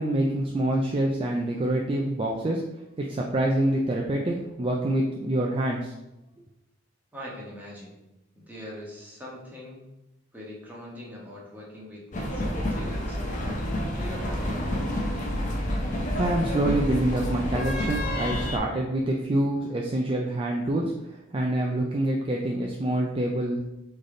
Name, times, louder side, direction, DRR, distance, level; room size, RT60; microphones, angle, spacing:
voice 1, 0.0-2.6 3.0-5.9 16.2-23.6, right 1 dB, 30° right, -1 dB, 0.4 m, -26 dB
voice 2, 7.1-8.0 8.3-9.8 10.3-13.2 13.9-15.3, equal, 10° right, -5 dB, 1.2 m, -42 dB
sound 1, 12.1-18.6, left 1 dB, 40° left, 0.7 m, -29 dB
4.1 x 3.3 x 3.8 m, 0.93 s
head